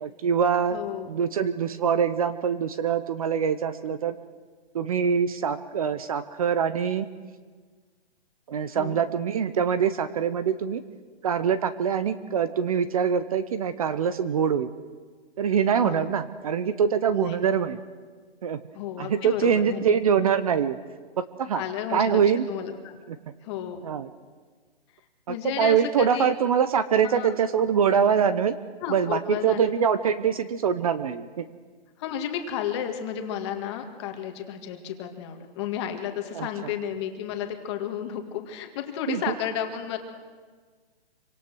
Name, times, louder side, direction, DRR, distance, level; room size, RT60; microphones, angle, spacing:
voice 1, 0.0-0.8 1.1-4.2 4.7-7.1 8.5-10.8 11.2-14.7 15.4-17.8 18.4-18.6 19.0-20.8 21.4-21.6 21.9-22.4 23.1-23.2 23.8-24.1 25.3-28.5 28.9-31.5 36.3-36.5 39.1-39.2, right 7 dB, 35° right, 13 dB, 0.8 m, -24 dB
voice 2, 0.7-1.1 8.7-9.0 15.8-16.1 17.1-17.4 18.7-19.8 21.5-22.2 22.5-22.7 23.4-23.8 25.3-26.3 27.0-27.3 28.8-29.6 32.0-40.0, left 9 dB, 25° left, 5 dB, 2.0 m, -32 dB
26.5 x 25.0 x 6.3 m, 1.5 s
hypercardioid pair, 160°, 32 cm